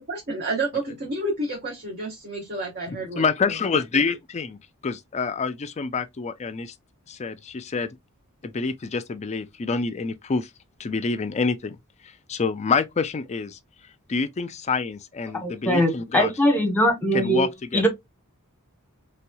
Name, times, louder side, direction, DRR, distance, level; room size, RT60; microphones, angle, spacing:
voice 1, 0.1-3.6, right 2 dB, 45° right, 0.9 m, -30 dB
voice 2, 2.9-4.6 4.8-6.7 7.1-7.9 8.4-10.5 10.8-11.8 12.3-13.6 14.1-16.3 17.1-17.8, left 4 dB, 30° left, 0.4 m, -27 dB
voice 3, 15.4-17.5 17.7-17.9, equal, 10° left, 0.9 m, -21 dB
3.3 x 3.0 x 2.2 m
head